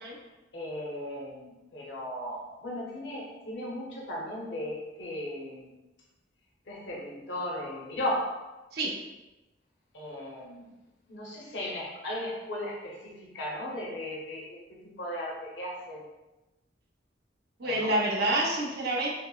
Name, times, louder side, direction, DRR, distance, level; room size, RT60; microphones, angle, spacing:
voice 1, 0.5-5.7 6.7-8.3 9.9-10.7 11.1-14.6 15.0-16.0 17.6-18.3, left 1 dB, 70° left, -4 dB, 0.7 m, -36 dB
voice 2, 17.6-19.1, right 1 dB, 55° right, -3 dB, 0.7 m, -27 dB
5.8 x 2.0 x 2.3 m, 1.1 s
head